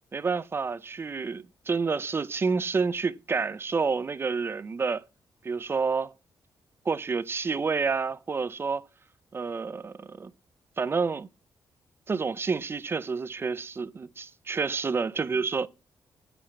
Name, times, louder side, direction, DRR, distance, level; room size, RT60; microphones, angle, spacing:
voice 1, 0.1-5.0 5.4-6.1 6.9-8.9 9.3-10.3 10.8-11.3 12.1-15.7, right 4 dB, 30° right, 0.4 m, -29 dB
7.2 x 5.1 x 5.7 m
cardioid pair, 120°, 8 cm